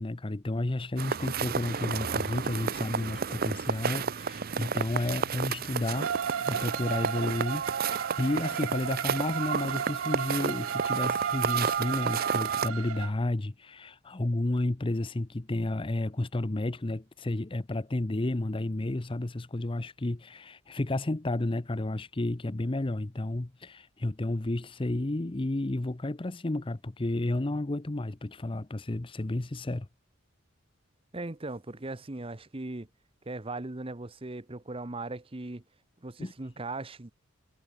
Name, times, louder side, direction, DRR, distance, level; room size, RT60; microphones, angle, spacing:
voice 1, 0.0-6.1 6.4-29.9 36.2-36.3, left 2 dB, 25° left, 0.7 m, -31 dB
sound 1, 1.0-12.7, right 6 dB, 45° right, 0.6 m, -31 dB
Bowed string instrument, 5.9-13.1, right 8 dB, 85° right, 0.5 m, -35 dB
voice 2, 31.1-32.9 33.3-35.6 36.0-37.1, right 2 dB, 25° right, 0.9 m, -38 dB
head